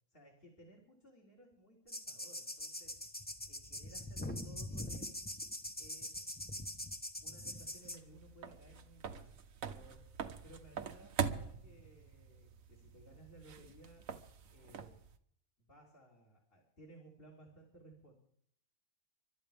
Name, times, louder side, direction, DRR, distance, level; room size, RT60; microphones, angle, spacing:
voice 1, 0.1-3.0 3.5-5.3 5.8-6.4 7.2-10.1 10.4-14.1 14.5-15.0 15.6-18.1, right 1 dB, 45° left, -1 dB, 3.5 m, -60 dB
sound 1, 1.9-8.0, left 1 dB, 10° left, 0.8 m, -43 dB
sound 2, 7.5-15.2, right 7 dB, 85° right, 1.3 m, -44 dB
30.0 x 12.5 x 3.5 m, 0.66 s
omnidirectional pair, 1.4 m